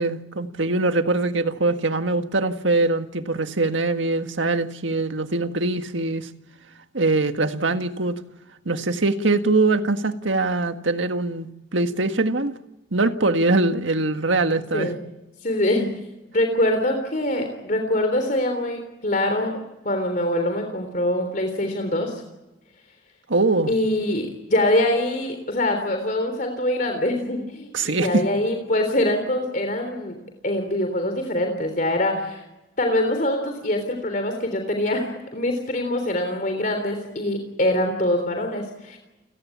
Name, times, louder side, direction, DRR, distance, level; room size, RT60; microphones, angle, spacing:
voice 1, 0.0-6.3 6.9-8.2 8.7-12.5 12.9-14.9 23.3-23.7 27.7-28.2, right 2 dB, 85° right, 7 dB, 1.7 m, -22 dB
voice 2, 15.4-15.9 16.3-19.6 19.9-22.2 23.7-30.2 30.4-32.4 32.8-39.0, left 1 dB, 45° left, 5 dB, 3.5 m, -24 dB
29.5 x 17.5 x 8.6 m, 1.0 s
head